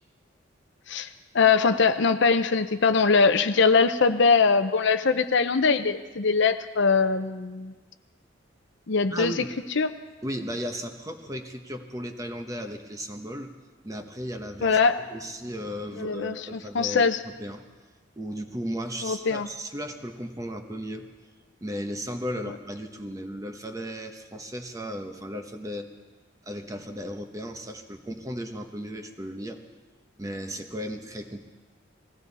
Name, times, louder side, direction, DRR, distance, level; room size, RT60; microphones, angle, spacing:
voice 1, 1.3-7.7 8.9-9.3 9.8-9.9 14.6-15.0 16.0-17.2 19.0-19.5, left 5 dB, 65° left, 10 dB, 0.7 m, -22 dB
voice 2, 9.1-9.5 10.2-13.5 13.8-14.8 15.1-17.6 18.2-21.1 21.6-25.9 26.4-29.6 30.2-31.4, equal, 15° right, 5 dB, 1.0 m, -35 dB
20.5 x 16.0 x 4.2 m, 1.3 s
head